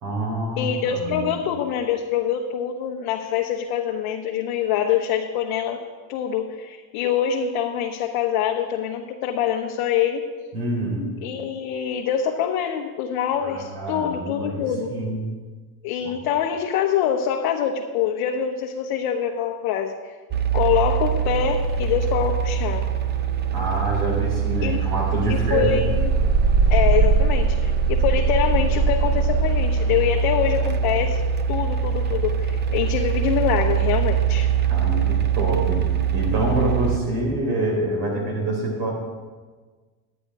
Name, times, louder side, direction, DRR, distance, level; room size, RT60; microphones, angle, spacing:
voice 1, 0.0-1.3 10.5-11.1 13.4-15.3 16.0-16.1 23.5-25.8 34.6-35.8 36.1-38.9, right 1 dB, 65° right, 0 dB, 3.8 m, -26 dB
voice 2, 0.6-5.8 6.1-10.2 11.2-14.9 15.8-20.0 20.5-22.8 24.6-24.8 25.3-26.1 26.7-31.2 31.5-34.5, left 9 dB, 65° left, 0 dB, 1.1 m, -25 dB
sound 1, 20.3-37.0, right 6 dB, 25° right, 0.7 m, -22 dB
10.5 x 9.6 x 4.7 m, 1.4 s
supercardioid pair, 105°, 44 cm